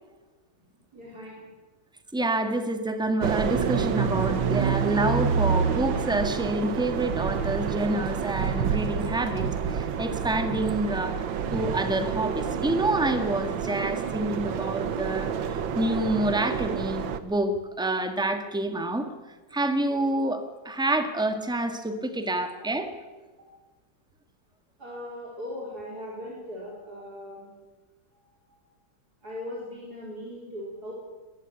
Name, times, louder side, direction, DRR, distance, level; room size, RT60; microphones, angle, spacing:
voice 1, 0.9-1.3 22.2-22.4 23.4-23.5 24.8-27.5 28.5-28.6 29.2-30.9, left 1 dB, 55° right, -4 dB, 4.9 m, -39 dB
voice 2, 2.1-19.1 19.5-22.9, right 1 dB, ahead, 7 dB, 1.6 m, -28 dB
sound 1, 3.2-17.2, right 7 dB, 85° right, 1.9 m, -28 dB
21.5 x 14.0 x 9.7 m, 1.3 s
omnidirectional pair, 2.0 m